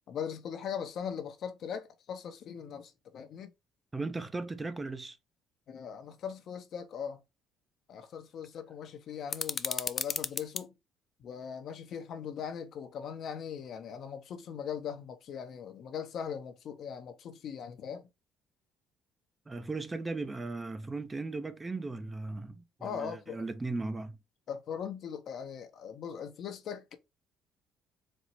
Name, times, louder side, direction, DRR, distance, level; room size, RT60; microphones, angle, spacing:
voice 1, 0.1-3.5 5.7-7.2 7.9-10.7 11.2-18.0 22.8-23.5 24.5-27.0, left 7 dB, 60° left, 0.7 m, -40 dB
voice 2, 3.9-5.2 19.5-24.2, right 3 dB, 20° right, 0.5 m, -37 dB
sound 1, 9.3-10.7, left 5 dB, 40° left, 0.3 m, -34 dB
4.2 x 2.0 x 4.3 m
supercardioid pair, 75°, 0 cm